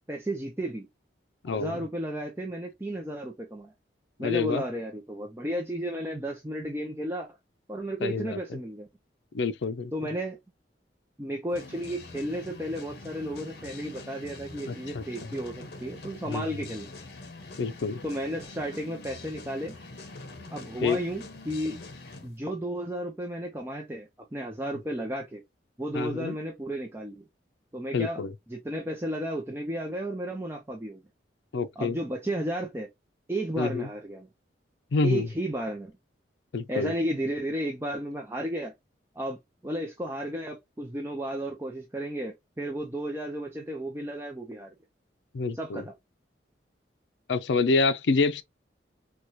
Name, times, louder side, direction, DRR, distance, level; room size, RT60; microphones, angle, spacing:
voice 1, 0.1-0.9 1.5-3.7 4.2-7.3 7.7-8.9 9.9-10.4 11.2-16.9 18.0-19.8 20.5-21.8 22.2-25.4 25.8-27.2 27.7-28.2 28.5-31.0 31.8-32.9 33.3-34.3 35.0-35.9 36.7-38.7 39.2-44.7 45.5-45.9, right 1 dB, 15° right, 0.5 m, -33 dB
voice 2, 1.4-1.8 4.2-4.6 8.0-8.4 9.3-9.9 14.7-15.0 16.3-16.5 17.6-18.0 20.8-21.0 25.9-26.3 27.9-28.3 31.5-32.0 33.6-33.9 34.9-35.3 36.5-36.9 45.3-45.8 47.3-48.4, left 4 dB, 75° left, 0.5 m, -27 dB
sound 1, 11.5-22.3, left 2 dB, 60° left, 0.9 m, -44 dB
4.6 x 2.2 x 2.6 m
head